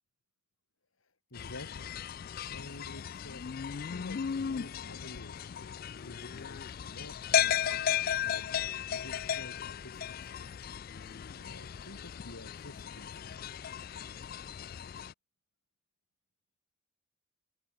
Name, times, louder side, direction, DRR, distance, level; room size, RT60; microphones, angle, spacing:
voice 1, 1.0-2.0 2.5-3.6 3.9-10.8 11.3-13.4, left 1 dB, 75° left, 3.5 m, -50 dB
sound 1, 1.3-15.1, left 9 dB, 45° left, 0.3 m, -35 dB
open air
head